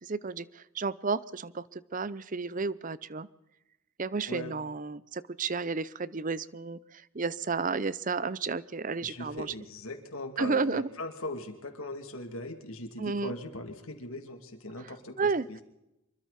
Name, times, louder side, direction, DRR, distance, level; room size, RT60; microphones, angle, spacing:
voice 1, 0.0-3.3 4.0-6.8 7.1-9.5 10.4-10.9 13.0-13.3 15.2-15.5, right 4 dB, 35° right, 18 dB, 0.6 m, -32 dB
voice 2, 9.0-15.6, left 2 dB, 70° left, 4 dB, 2.8 m, -40 dB
26.0 x 23.5 x 4.2 m, 0.91 s
head